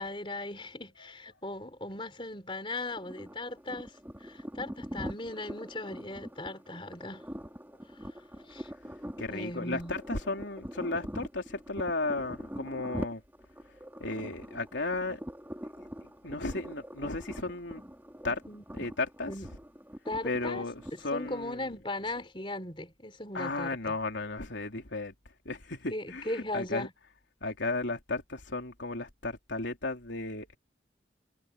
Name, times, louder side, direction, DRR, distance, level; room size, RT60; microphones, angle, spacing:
voice 1, 0.0-7.2 8.0-8.1 8.5-8.7 9.3-10.0 18.5-18.9 19.3-19.5 20.1-20.6 20.9-24.0 25.9-26.9, left 2 dB, 25° left, 3.9 m, -38 dB
sound 1, 2.9-21.5, equal, 10° right, 3.3 m, -43 dB
voice 2, 9.2-13.2 14.0-15.2 16.2-17.8 18.2-18.4 18.7-19.3 20.2-21.7 23.3-25.1 25.5-26.9 27.4-30.6, left 2 dB, 80° left, 3.5 m, -34 dB
head